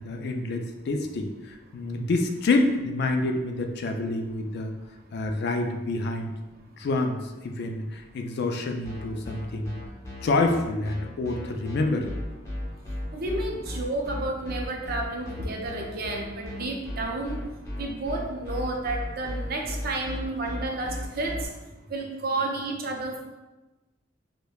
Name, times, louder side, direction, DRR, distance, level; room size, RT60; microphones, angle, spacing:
voice 1, 0.0-4.7 5.1-6.3 6.8-9.7 10.2-12.2, left 2 dB, 60° left, 4 dB, 0.4 m, -27 dB
sound 1, 8.8-21.4, left 1 dB, 15° left, 0.8 m, -35 dB
voice 2, 13.1-17.4 17.8-21.5 21.9-23.2, right 2 dB, 50° right, 1 dB, 0.5 m, -31 dB
4.9 x 2.1 x 2.3 m, 1.1 s
head